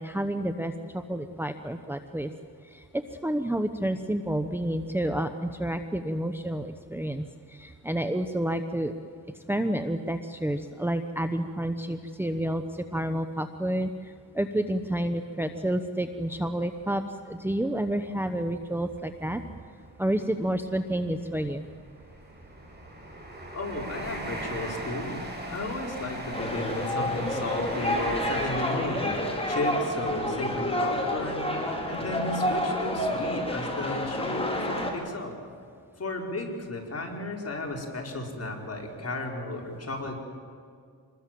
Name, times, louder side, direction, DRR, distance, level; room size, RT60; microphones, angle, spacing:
voice 1, 0.0-2.3 2.6-8.9 9.5-19.4 20.0-21.7, right 1 dB, 5° right, 8 dB, 1.0 m, -30 dB
sound 1, 16.3-16.5 17.0-17.1 18.3-18.4 18.7-18.9 19.6-32.3 32.8-33.0, right 1 dB, 25° right, 6.9 m, -40 dB
voice 2, 23.5-25.2 25.5-35.3 36.0-40.2, left 2 dB, 40° left, 0 dB, 5.2 m, -33 dB
sound 2, 26.3-34.9, left 1 dB, 15° left, 5.0 m, -29 dB
26.5 x 21.0 x 7.7 m, 2.2 s
cardioid pair, 80°, 39 cm